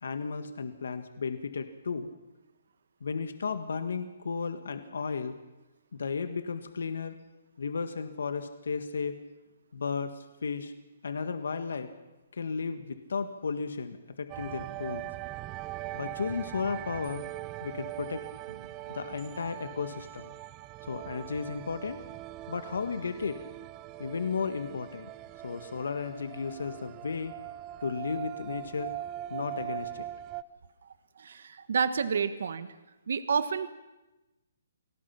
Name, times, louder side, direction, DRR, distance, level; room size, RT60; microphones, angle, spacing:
voice 1, 0.0-2.1 3.0-5.4 5.9-7.2 7.6-9.2 9.7-10.7 11.0-11.9 12.3-15.1 15.9-17.3 17.6-18.3 18.9-20.3 20.8-22.0 22.5-23.4 24.0-25.1 25.4-27.4 27.8-29.0 29.3-30.1, left 5 dB, 80° left, 9 dB, 1.7 m, -34 dB
sound 1, 14.3-30.4, right 15 dB, 25° right, 0.7 m, -41 dB
voice 2, 31.2-32.7 33.1-33.7, right 6 dB, 70° right, 12 dB, 1.4 m, -29 dB
28.5 x 19.0 x 5.9 m, 1.0 s
hypercardioid pair, 155°, 0 cm